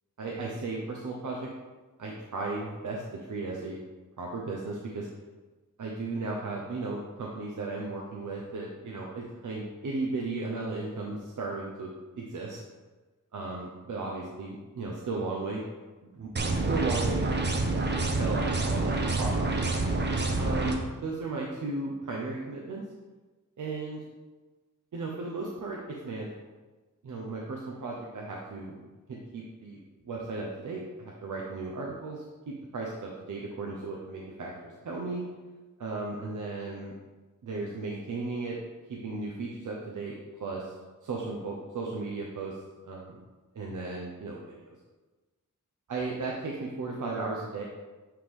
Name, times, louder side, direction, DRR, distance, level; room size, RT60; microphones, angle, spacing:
voice 1, 0.2-1.5 2.0-3.0 3.3-3.8 4.2-5.1 5.8-11.9 12.2-12.6 13.3-15.6 16.1-17.4 18.2-19.7 20.4-22.8 23.6-24.0 24.9-26.3 27.0-29.8 30.0-35.2 35.8-36.9 37.4-38.6 38.9-40.7 41.0-42.6 42.8-43.2 43.5-44.7 45.9-47.6, right 3 dB, 65° right, -2 dB, 0.8 m, -35 dB
sound 1, 16.4-20.8, right 2 dB, 35° right, 0.7 m, -27 dB
8.6 x 3.3 x 3.7 m, 1.2 s
wide cardioid pair, 145°, 32 cm